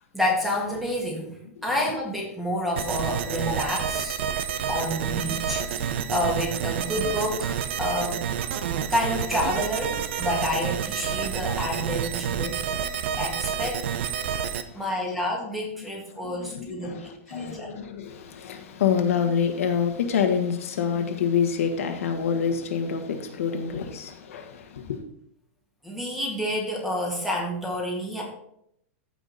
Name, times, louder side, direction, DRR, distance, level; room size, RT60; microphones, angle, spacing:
voice 1, 0.1-1.4 1.6-4.2 4.7-8.2 8.9-12.6 13.1-14.0 14.7-17.7 25.8-28.2, left 1 dB, ahead, -1 dB, 1.7 m, -29 dB
sound 1, 2.8-14.6, right 8 dB, 55° right, 0.8 m, -29 dB
voice 2, 16.1-25.0, left 7 dB, 75° left, 5 dB, 1.6 m, -27 dB
14.5 x 5.1 x 4.1 m, 0.73 s
supercardioid pair, 170°, 7 cm